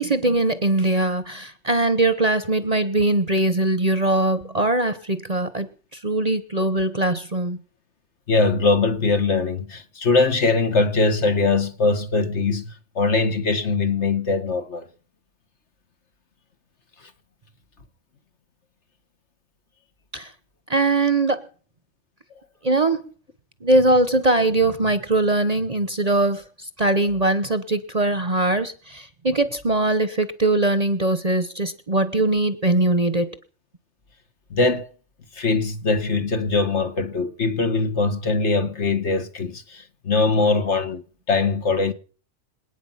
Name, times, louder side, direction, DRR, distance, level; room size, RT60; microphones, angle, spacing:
voice 1, 0.0-5.7 5.9-7.6 20.1-20.3 20.7-21.4 22.6-23.0 23.6-26.4 26.8-33.3, right 2 dB, 30° right, 1.1 m, -21 dB
voice 2, 8.3-14.9 34.5-34.9 35.3-41.0 41.3-41.9, left 3 dB, 55° left, 1.7 m, -21 dB
27.0 x 9.3 x 5.8 m
omnidirectional pair, 1.4 m